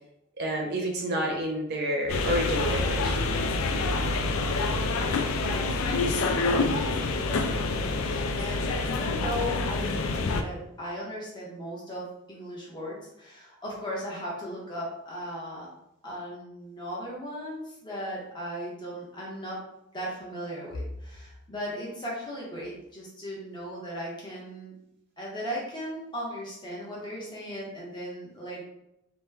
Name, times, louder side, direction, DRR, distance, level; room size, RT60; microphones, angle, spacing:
voice 1, 0.4-3.2, right 1 dB, 50° right, -1 dB, 0.7 m, -29 dB
sound 1, 2.1-10.4, left 3 dB, 70° left, 0.3 m, -27 dB
voice 2, 5.3-15.7 16.0-19.6 19.9-24.8 25.2-28.6, equal, 20° left, -5 dB, 0.9 m, -37 dB
2.9 x 2.1 x 3.4 m, 0.84 s
head